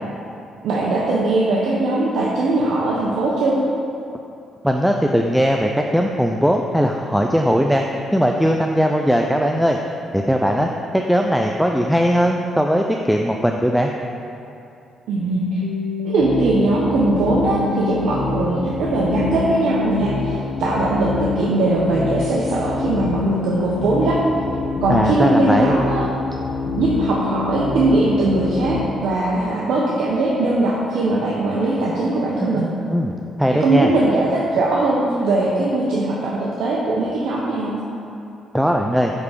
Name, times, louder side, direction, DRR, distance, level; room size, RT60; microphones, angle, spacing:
voice 1, 0.6-3.6 15.1-15.6 16.0-21.1 21.4-24.2 24.8-26.1 26.8-32.7 33.5-37.8, right 2 dB, 80° right, -5 dB, 0.8 m, -20 dB
voice 2, 4.6-7.8 8.1-9.8 10.1-13.9 24.9-25.8 32.4-32.5 32.9-33.1 33.4-33.9 38.5-39.1, equal, ahead, 2 dB, 0.4 m, -19 dB
sound 1, 15.2-28.8, left 4 dB, 75° left, 0.9 m, -26 dB
8.1 x 3.6 x 5.1 m, 2.7 s
cardioid pair, 90°, 0 cm